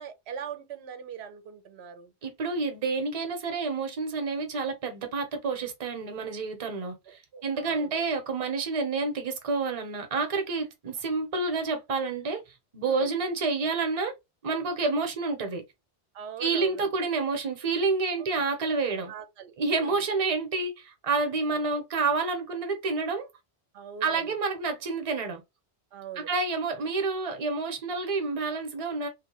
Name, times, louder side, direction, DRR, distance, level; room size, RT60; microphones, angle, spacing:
voice 1, 0.0-2.1 7.1-8.0 12.9-13.1 16.1-16.9 18.2-18.4 19.1-20.0 23.7-24.3 25.9-26.3, right 8 dB, 90° right, 0.8 m, -42 dB
voice 2, 2.2-12.4 12.7-14.1 14.4-15.6 16.4-19.1 19.6-23.3 24.0-25.4 26.2-29.1, right 4 dB, 40° right, 0.7 m, -29 dB
2.9 x 2.2 x 2.9 m
omnidirectional pair, 1.1 m